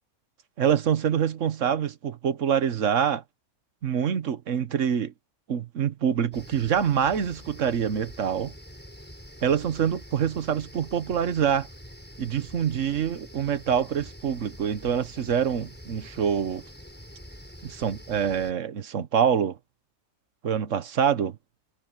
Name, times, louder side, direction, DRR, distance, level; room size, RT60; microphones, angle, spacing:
voice 1, 0.6-3.2 3.8-5.1 5.5-8.5 9.4-11.7 12.2-16.6 17.6-19.6 20.4-21.4, right 8 dB, 60° right, 1.3 m, -25 dB
sound 1, 6.3-18.5, equal, 5° left, 6.2 m, -46 dB
omnidirectional pair, 1.5 m